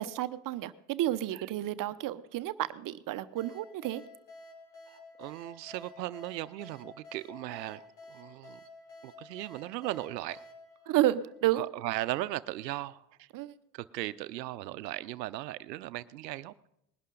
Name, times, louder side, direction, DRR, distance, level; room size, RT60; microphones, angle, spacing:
voice 1, 0.0-4.0 10.9-11.6 13.3-13.5, right 14 dB, 40° right, 14 dB, 0.7 m, -31 dB
sound 1, 3.4-11.8, left 2 dB, 55° left, 3.8 m, -52 dB
voice 2, 4.9-8.6 9.0-10.4 10.8-10.9 11.6-13.3 13.7-16.7, right 16 dB, 80° right, 15 dB, 0.7 m, -38 dB
20.5 x 11.5 x 3.8 m, 0.80 s
hypercardioid pair, 80°, 49 cm